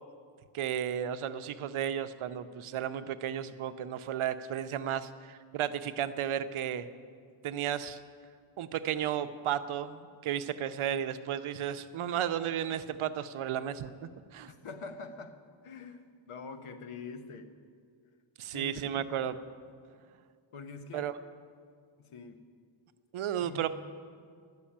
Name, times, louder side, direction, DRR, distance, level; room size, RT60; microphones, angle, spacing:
voice 1, 0.5-6.9 7.4-8.0 8.6-13.9 14.3-14.5 18.4-19.4 20.9-21.1 23.1-23.7, right 10 dB, 80° right, 11 dB, 0.6 m, -33 dB
voice 2, 14.5-17.5 18.5-19.2 20.5-21.1 22.0-22.4 23.4-23.7, left 4 dB, 90° left, 8 dB, 0.9 m, -45 dB
11.5 x 6.2 x 8.6 m, 2.1 s
wide cardioid pair, 170°, 49 cm